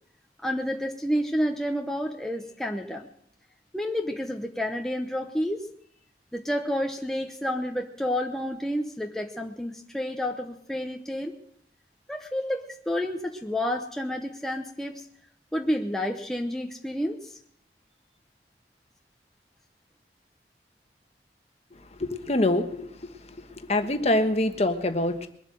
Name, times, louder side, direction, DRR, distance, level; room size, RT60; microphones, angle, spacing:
voice 1, 0.4-3.1 3.7-5.7 6.3-11.3 12.1-15.0 15.5-17.3, equal, 5° left, 2 dB, 0.9 m, -30 dB
voice 2, 22.0-23.1 23.6-25.3, left 1 dB, 35° left, 7 dB, 1.3 m, -25 dB
22.0 x 8.1 x 7.6 m, 0.67 s
head